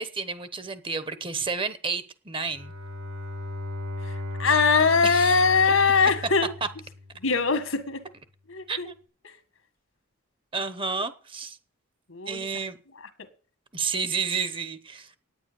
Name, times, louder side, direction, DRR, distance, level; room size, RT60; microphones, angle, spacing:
voice 1, 0.0-2.7 5.0-5.4 8.7-9.0 10.5-11.6 12.3-12.8 13.7-15.1, right 5 dB, 25° right, 0.9 m, -31 dB
Bowed string instrument, 2.4-7.4, left 2 dB, 85° right, 4.0 m, -36 dB
voice 2, 4.4-6.5 7.2-8.0 8.5-8.9 12.1-12.4 13.2-13.3, left 4 dB, 70° left, 1.8 m, -22 dB
10.0 x 9.6 x 6.9 m
head